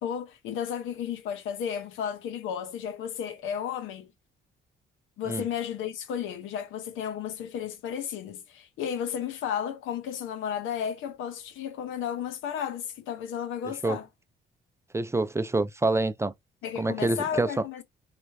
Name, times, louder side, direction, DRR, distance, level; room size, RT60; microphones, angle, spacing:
voice 1, 0.0-4.1 5.2-14.1 16.6-17.8, left 8 dB, 90° left, 0.8 m, -33 dB
voice 2, 14.9-16.3 16.8-17.6, right 2 dB, 15° right, 0.4 m, -26 dB
4.3 x 2.5 x 3.3 m
cardioid pair, 90°, 20 cm